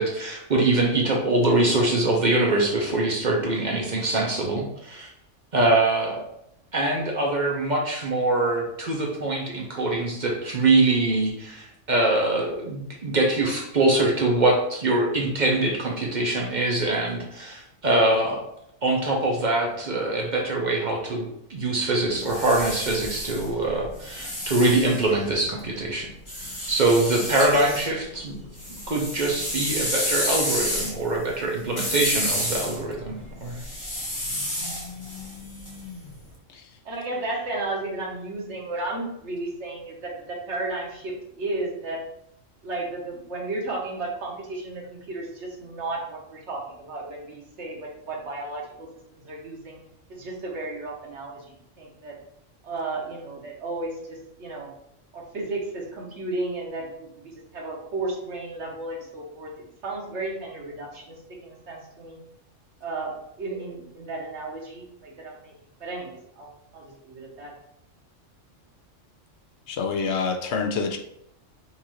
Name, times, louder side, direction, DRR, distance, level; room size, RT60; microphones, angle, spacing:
voice 1, 0.0-5.1 5.5-6.2 6.7-18.4 18.8-26.1 26.7-28.4 28.9-33.6, right 2 dB, 45° right, -1 dB, 0.7 m, -23 dB
sound 1, 22.1-25.6 26.3-27.9 28.3-36.2, left 1 dB, 25° left, 1.1 m, -30 dB
voice 2, 36.8-42.0 42.6-49.8 50.1-52.1 52.6-54.7 55.1-59.5 59.8-61.2 61.4-62.2 62.8-65.5 65.8-66.5 66.7-67.5, right 2 dB, 65° right, -2 dB, 1.3 m, -33 dB
voice 3, 69.7-71.0, left 5 dB, 70° left, 3 dB, 0.8 m, -26 dB
5.4 x 2.5 x 3.0 m, 0.76 s
omnidirectional pair, 1.3 m